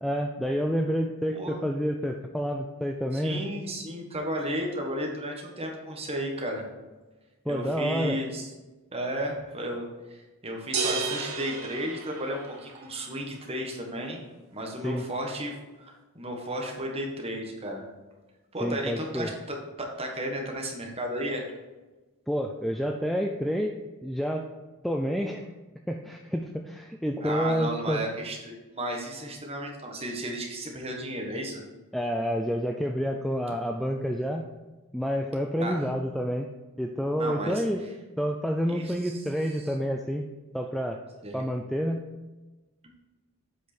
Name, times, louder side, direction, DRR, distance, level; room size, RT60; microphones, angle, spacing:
voice 1, 0.0-3.4 7.5-8.2 14.8-15.0 18.6-19.3 22.3-23.8 24.0-24.5 24.8-25.5 25.9-28.1 31.9-34.5 34.9-36.5 36.8-37.9 38.2-40.3 40.5-41.0 41.3-42.1, equal, ahead, 3 dB, 0.3 m, -29 dB
voice 2, 3.1-6.7 7.5-8.5 8.9-14.2 14.5-17.9 18.5-21.4 27.2-31.6 35.6-35.8 37.1-37.6 38.7-39.2 41.2-41.4, right 1 dB, 25° right, 1 dB, 1.3 m, -34 dB
sound 1, 10.7-12.8, right 4 dB, 80° right, 1.4 m, -32 dB
7.8 x 5.3 x 4.3 m, 1.2 s
head